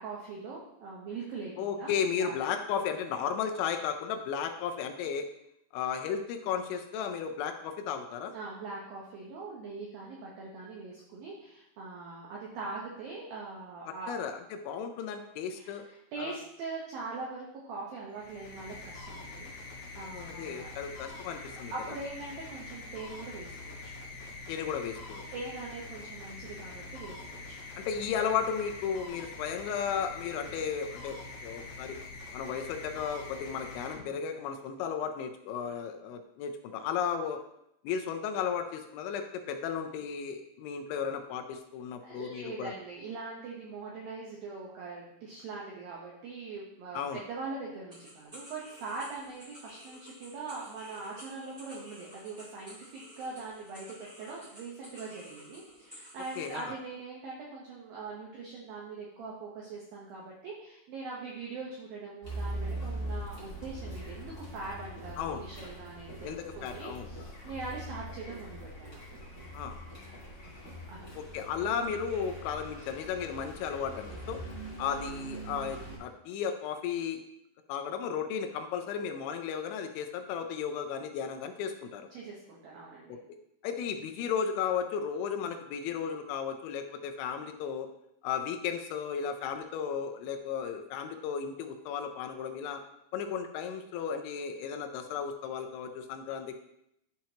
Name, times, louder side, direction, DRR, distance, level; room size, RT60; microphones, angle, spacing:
voice 1, 0.0-1.9 2.2-2.4 8.3-14.2 15.6-19.5 20.0-20.8 21.7-23.9 24.2-24.4 25.3-27.6 42.0-69.0 70.9-71.1 82.1-83.2, right 3 dB, 80° right, -4 dB, 2.1 m, -42 dB
voice 2, 1.6-5.3 5.7-8.3 14.1-14.4 14.7-15.9 16.2-16.4 20.0-22.0 24.5-25.2 27.8-31.2 31.4-32.0 32.3-37.4 37.8-42.7 46.9-47.2 56.4-56.8 65.2-65.4 66.2-67.1 67.4-67.5 69.5-69.8 71.2-74.4 74.8-77.2 77.7-82.1 83.1-83.2 83.6-87.9 88.2-92.8 93.1-96.6, left 7 dB, 80° left, 5 dB, 2.9 m, -34 dB
sound 1, 18.1-34.6, left 3 dB, 65° left, 2.5 m, -45 dB
sound 2, 47.9-56.6, equal, 15° right, 1.7 m, -51 dB
Car, 62.2-76.0, right 1 dB, 45° left, 0.9 m, -42 dB
11.5 x 4.5 x 2.8 m, 0.79 s
omnidirectional pair, 5.5 m